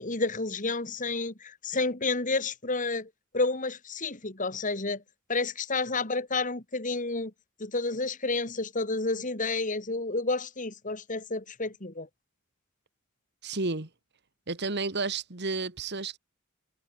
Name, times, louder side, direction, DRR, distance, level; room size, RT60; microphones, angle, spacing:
voice 1, 0.0-5.0 5.3-7.3 7.6-12.1, left 3 dB, 35° left, 2.4 m, -30 dB
voice 2, 13.4-13.9 14.5-16.2, right 3 dB, 50° right, 2.1 m, -31 dB
head